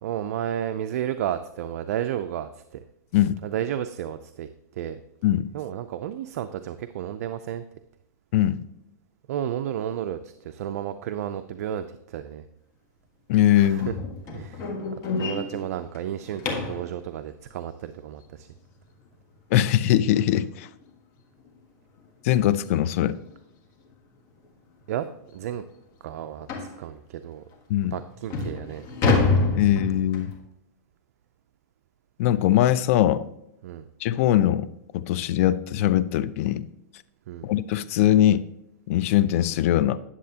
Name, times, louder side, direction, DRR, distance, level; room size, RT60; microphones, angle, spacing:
voice 1, 0.0-2.8 3.4-5.0 5.5-7.6 9.3-12.4 13.5-13.9 14.3-14.7 15.2-18.5 24.9-25.1 25.3-25.6 26.0-27.4 27.9-28.8 33.6-33.8 37.3-37.5, right 10 dB, 60° right, 0.4 m, -32 dB
voice 2, 8.3-8.6 13.3-13.9 19.5-20.7 22.2-23.2 27.7-28.0 29.5-30.3 32.2-33.3 34.0-34.7 34.9-36.7 37.4-38.4 38.9-40.0, left 12 dB, 50° left, 0.5 m, -21 dB
sound 1, 13.8-16.9 19.7-19.8 20.3-20.5 20.8-20.9 21.4-21.5 22.6-22.7 23.1-23.3 23.9-24.0 24.4-24.5 25.0-25.1 26.5-26.8 27.5-27.6 28.1-30.4, left 3 dB, 35° left, 1.5 m, -27 dB
9.8 x 7.3 x 2.8 m
hypercardioid pair, 140°, 9 cm